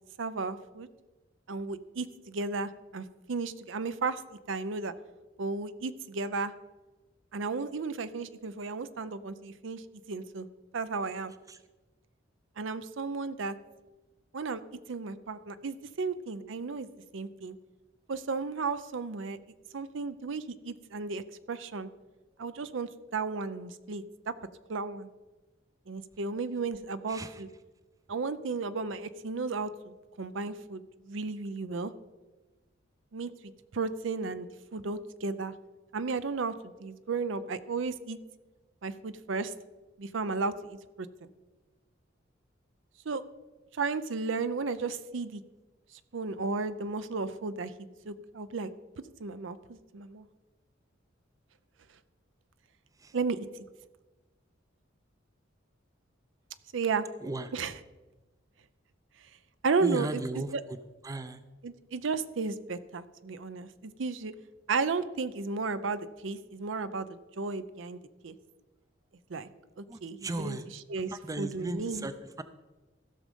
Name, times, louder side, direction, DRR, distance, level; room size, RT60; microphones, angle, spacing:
voice 1, 0.2-0.9 1.5-4.2 4.5-4.9 5.4-6.5 7.3-10.5 10.7-11.3 12.6-13.5 14.3-14.6 14.9-16.9 17.1-17.6 18.1-19.4 19.7-21.2 21.5-21.9 22.4-24.3 24.7-25.1 25.9-27.5 28.1-31.9 33.1-33.3 33.7-35.5 35.9-36.5 36.8-38.2 38.8-39.5 40.0-41.3 43.1-43.2 43.7-45.4 46.1-47.7 48.1-48.7 49.2-50.3 53.1-53.6 56.7-57.1 57.5-57.8 59.6-60.6 61.6-64.3 64.7-68.4 69.3-69.5 69.8-72.1, right 4 dB, 70° right, 13 dB, 0.6 m, -34 dB
voice 2, 59.8-60.5 61.0-61.4 69.9-70.7 71.1-72.1 72.4-72.5, right 2 dB, 20° right, 12 dB, 0.5 m, -36 dB
15.5 x 6.4 x 5.3 m, 1.2 s
head